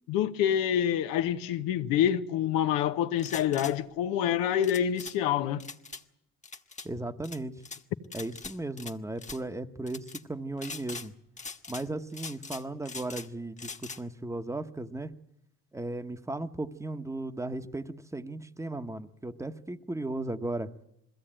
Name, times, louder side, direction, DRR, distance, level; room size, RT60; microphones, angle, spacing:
voice 1, 0.1-5.6, left 10 dB, 85° left, 1.1 m, -27 dB
sound 1, 3.2-3.7 4.6-5.2 5.6-6.0 6.4-6.9 7.2-7.8 8.1-8.9 9.2-9.4 9.9-10.2 10.6-11.1 11.4-11.9 12.1-13.3 13.6-14.0, left 4 dB, 20° left, 1.2 m, -42 dB
voice 2, 6.8-7.6 8.1-11.1 11.7-15.1 15.7-20.7, right 2 dB, 10° right, 1.1 m, -36 dB
21.5 x 15.5 x 8.9 m
supercardioid pair, 75°, 33 cm